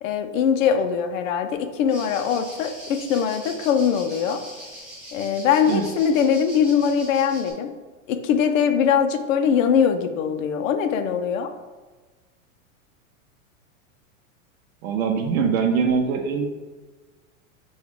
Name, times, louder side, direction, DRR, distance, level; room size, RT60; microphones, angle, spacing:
voice 1, 0.0-4.4 5.1-7.7 8.1-11.5, left 7 dB, 70° left, 6 dB, 0.6 m, -22 dB
sound 1, 1.9-7.5, equal, 5° right, 0.8 m, -41 dB
voice 2, 14.8-16.5, right 6 dB, 90° right, 4 dB, 0.7 m, -22 dB
6.1 x 2.3 x 3.6 m, 1.3 s
supercardioid pair, 170°, 41 cm